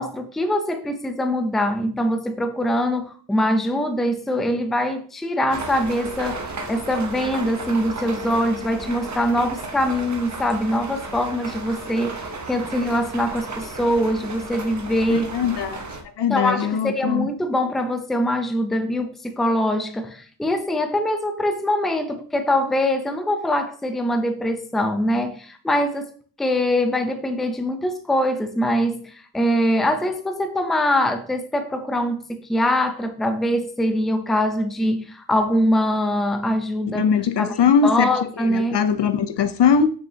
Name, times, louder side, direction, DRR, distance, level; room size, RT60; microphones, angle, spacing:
voice 1, 0.0-15.3 16.3-37.1 37.4-37.5 37.8-38.8, left 1 dB, ahead, 0.5 m, -23 dB
sound 1, 5.5-16.0, right 3 dB, 35° right, 1.0 m, -34 dB
voice 2, 15.1-15.9 16.2-17.3 36.9-38.1 38.5-39.9, left 6 dB, 55° left, 0.7 m, -20 dB
7.1 x 6.2 x 2.8 m
wide cardioid pair, 145°, 49 cm